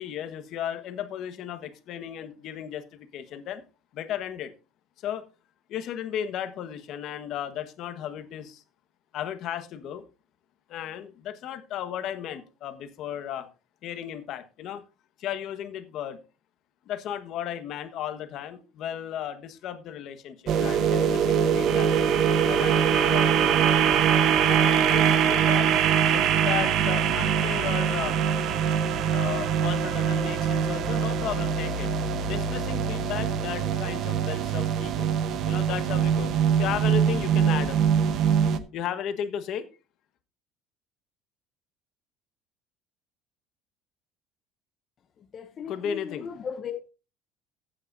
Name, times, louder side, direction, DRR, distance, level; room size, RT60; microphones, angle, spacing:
voice 1, 0.0-3.6 3.9-4.5 5.0-5.3 5.7-8.6 9.1-10.0 10.7-13.5 13.8-14.8 15.2-16.2 16.9-21.9 22.5-23.7 24.5-25.7 26.1-28.2 29.1-31.9 32.2-35.1 35.4-37.8 38.7-39.6 45.6-46.5, left 10 dB, 50° left, 1.3 m, -35 dB
sound 1, 20.5-38.6, right 8 dB, 45° right, 0.9 m, -23 dB
voice 2, 45.3-46.9, left 7 dB, 30° left, 0.7 m, -36 dB
15.0 x 8.6 x 2.6 m
cardioid pair, 155°, 0 cm